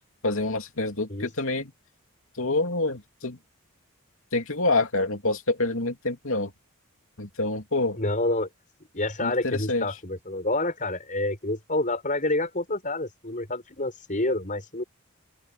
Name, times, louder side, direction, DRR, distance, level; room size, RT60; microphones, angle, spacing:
voice 1, 0.2-1.7 2.3-3.4 4.3-6.5 7.2-8.0 9.2-9.9, left 2 dB, 60° left, 3.0 m, -27 dB
voice 2, 8.0-8.5 8.9-14.8, left 2 dB, 35° left, 6.2 m, -28 dB
open air
head